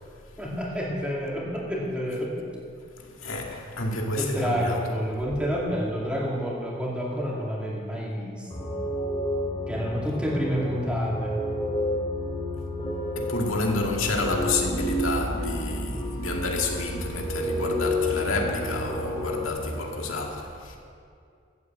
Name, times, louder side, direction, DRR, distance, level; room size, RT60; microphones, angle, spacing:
voice 1, 0.4-2.5 4.2-8.8 9.7-11.4, equal, 5° right, 2.3 m, -29 dB
voice 2, 3.0-4.8 13.2-20.8, left 2 dB, 90° left, 2.2 m, -29 dB
sound 1, 8.5-19.5, left 1 dB, 20° left, 2.3 m, -30 dB
15.0 x 8.4 x 7.8 m
head